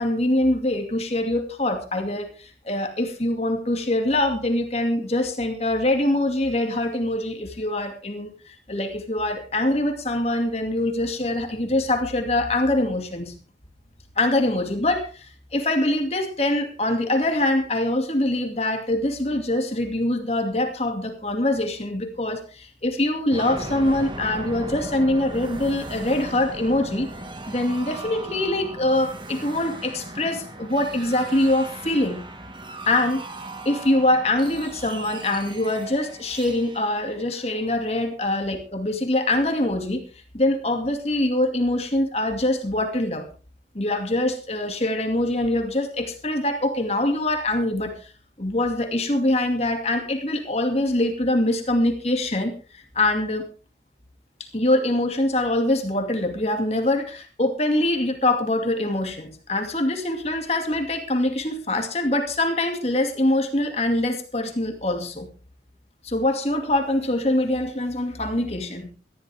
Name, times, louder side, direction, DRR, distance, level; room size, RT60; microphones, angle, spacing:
voice 1, 0.0-13.3 14.2-27.1 27.5-32.2 32.9-33.2 33.6-40.0 40.3-43.3 43.7-48.1 48.4-53.5 54.5-65.3 66.0-68.9, left 1 dB, 35° left, 5 dB, 2.4 m, -24 dB
sound 1, 23.3-38.0, right 2 dB, 25° right, 1.8 m, -38 dB
20.0 x 14.0 x 3.5 m, 0.35 s
head